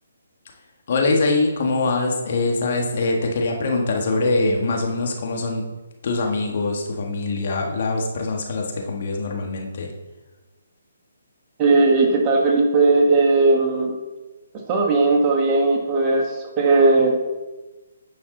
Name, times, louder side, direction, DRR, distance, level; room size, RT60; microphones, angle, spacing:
voice 1, 0.9-5.6 6.0-9.9, left 3 dB, 50° left, 1 dB, 1.6 m, -23 dB
voice 2, 11.6-13.9 14.7-17.1, right 3 dB, 25° right, 0 dB, 1.3 m, -17 dB
9.2 x 5.7 x 4.0 m, 1.2 s
hypercardioid pair, 145°, 0 cm